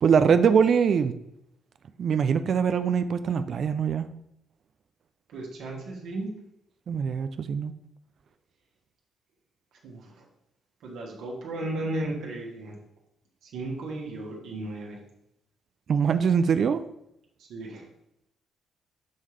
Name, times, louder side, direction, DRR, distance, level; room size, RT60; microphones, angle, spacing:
voice 1, 0.0-1.1 2.0-4.1 6.9-7.7 15.9-16.8, right 6 dB, 55° right, 10 dB, 0.3 m, -23 dB
voice 2, 5.3-6.3 9.8-10.3 10.8-12.8 13.4-15.0 17.4-17.9, right 2 dB, 80° right, -2 dB, 1.5 m, -35 dB
5.5 x 5.4 x 3.2 m, 0.78 s
cardioid pair, 90°, 0 cm